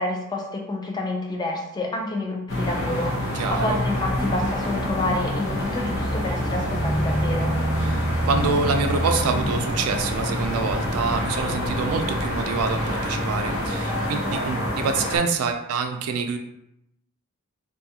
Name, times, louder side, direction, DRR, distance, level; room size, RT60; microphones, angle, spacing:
voice 1, 0.0-3.1 3.5-7.5, left 2 dB, 20° left, 0 dB, 0.3 m, -28 dB
sound 1, 2.5-15.2, equal, 55° left, 0.7 m, -26 dB
voice 2, 3.3-3.8 7.9-16.4, right 5 dB, 85° right, 6 dB, 0.3 m, -26 dB
2.6 x 2.3 x 2.7 m, 0.82 s
head